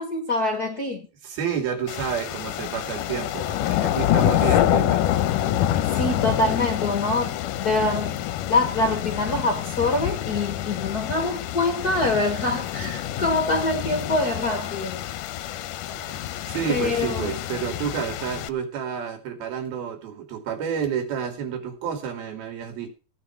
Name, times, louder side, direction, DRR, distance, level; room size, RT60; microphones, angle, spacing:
voice 1, 0.0-1.1 5.9-8.2 8.5-15.0 16.7-17.4, left 2 dB, 45° left, 1.2 m, -25 dB
voice 2, 1.2-5.0 15.9-22.9, right 7 dB, 85° right, 4.4 m, -30 dB
sound 1, 1.9-18.5, left 12 dB, 75° left, 2.1 m, -27 dB
16.0 x 9.6 x 4.6 m
omnidirectional pair, 4.2 m